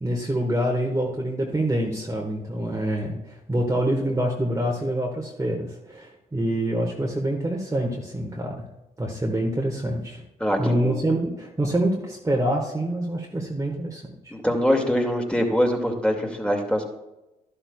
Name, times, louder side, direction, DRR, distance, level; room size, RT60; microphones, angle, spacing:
voice 1, 0.0-8.6 9.0-10.2 10.6-14.0, right 1 dB, 15° right, -1 dB, 1.6 m, -26 dB
voice 2, 10.4-10.9 14.3-16.8, equal, 5° left, 2 dB, 2.3 m, -23 dB
12.0 x 11.5 x 2.4 m, 0.98 s
hypercardioid pair, 40°, 19 cm